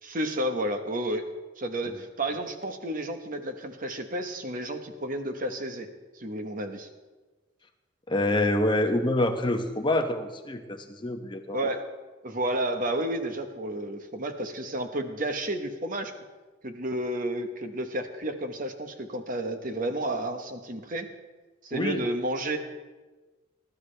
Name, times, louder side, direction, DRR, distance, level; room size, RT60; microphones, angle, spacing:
voice 1, 0.0-1.2 1.6-5.9 6.1-6.9 11.5-11.9 12.2-16.1 16.6-21.1 21.6-22.6, right 1 dB, 45° right, 7 dB, 1.1 m, -31 dB
voice 2, 8.1-11.7 21.7-22.0, left 1 dB, 25° left, 5 dB, 0.9 m, -26 dB
20.0 x 12.0 x 3.4 m, 1.2 s
head